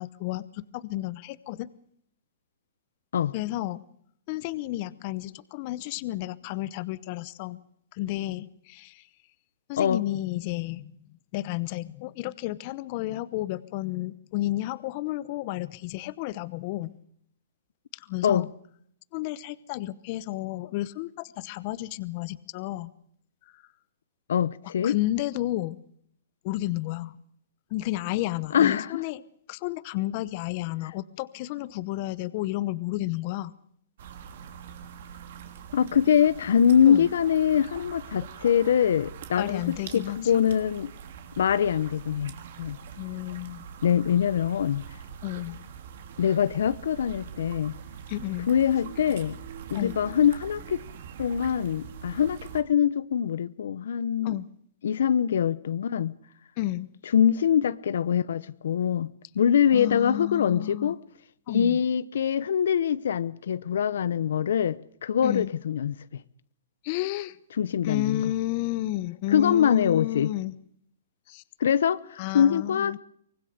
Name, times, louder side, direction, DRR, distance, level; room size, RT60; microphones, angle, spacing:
voice 1, 0.0-1.7 3.3-3.8 4.3-7.6 7.9-9.1 9.7-10.9 11.3-17.0 17.9-18.5 19.1-22.9 23.5-23.6 24.8-25.8 26.4-27.2 27.7-29.2 29.5-33.5 36.9-37.1 39.4-40.4 43.0-43.7 45.2-45.6 48.1-48.5 49.7-49.9 54.2-54.5 56.6-56.9 59.7-61.0 61.5-61.8 65.2-65.5 66.8-67.4 67.8-70.6 71.3-71.4 72.2-73.0, left 16 dB, 35° left, 0.9 m, -32 dB
voice 2, 24.3-25.0 28.5-29.0 35.7-40.9 41.4-42.8 43.8-44.8 46.2-47.7 48.5-49.4 49.7-50.8 51.2-54.4 54.8-56.1 57.1-61.0 61.5-66.0 67.6-68.2 69.3-70.3 71.6-73.0, left 8 dB, 70° left, 0.8 m, -24 dB
sound 1, 34.0-52.6, right 7 dB, 55° right, 3.1 m, -43 dB
24.0 x 20.0 x 6.6 m
hypercardioid pair, 155°, 0 cm